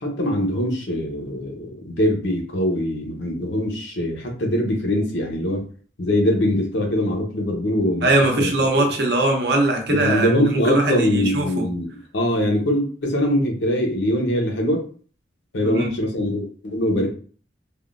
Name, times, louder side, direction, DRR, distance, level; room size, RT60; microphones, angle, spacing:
voice 1, 0.0-5.6 6.0-8.1 8.4-8.5 9.9-11.9 12.1-14.8 15.5-17.1, equal, 80° left, 0 dB, 0.9 m, -22 dB
voice 2, 8.0-11.6 15.6-15.9, right 1 dB, 60° right, 2 dB, 0.7 m, -21 dB
3.5 x 2.2 x 2.5 m, 0.42 s
head